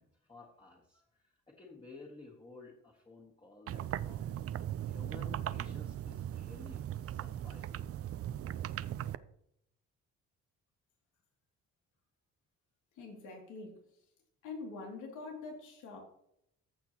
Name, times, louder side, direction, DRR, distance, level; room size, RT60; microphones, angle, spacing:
voice 1, 0.0-4.5 4.9-8.1, left 3 dB, 15° left, -2 dB, 1.8 m, -54 dB
sound 1, 3.7-9.2, right 11 dB, 50° right, 0.5 m, -38 dB
voice 2, 13.0-13.8 14.4-16.0, left 3 dB, 90° left, 0 dB, 2.7 m, -44 dB
14.5 x 6.0 x 3.0 m, 0.72 s
cardioid pair, 90°, 30 cm